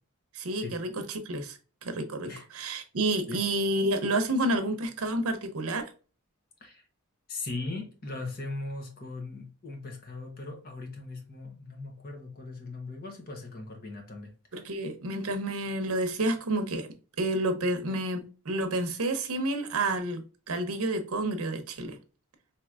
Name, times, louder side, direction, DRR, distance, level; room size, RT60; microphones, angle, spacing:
voice 1, 0.3-1.6 1.8-5.9 14.5-16.9 17.2-22.0, right 1 dB, 80° right, 0.8 m, -29 dB
voice 2, 7.3-14.7, left 3 dB, 45° left, 0.9 m, -39 dB
4.4 x 2.9 x 2.4 m
head